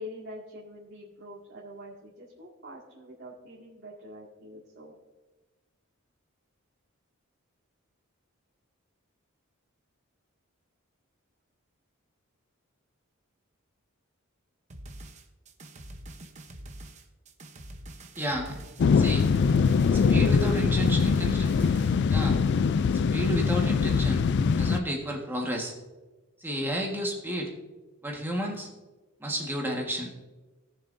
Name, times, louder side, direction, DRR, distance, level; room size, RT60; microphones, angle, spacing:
voice 1, 0.0-5.0, left 1 dB, 55° right, -6 dB, 2.1 m, -45 dB
sound 1, 14.7-22.0, right 1 dB, 35° right, 0.9 m, -45 dB
voice 2, 18.1-18.6 19.0-19.2 20.1-21.5 22.1-22.4 23.1-25.7 26.4-27.5 28.0-28.7 29.2-30.1, equal, 10° right, -1 dB, 1.5 m, -31 dB
sound 2, 18.8-24.8, left 5 dB, 50° left, 0.3 m, -23 dB
18.5 x 7.1 x 2.7 m, 1.2 s
head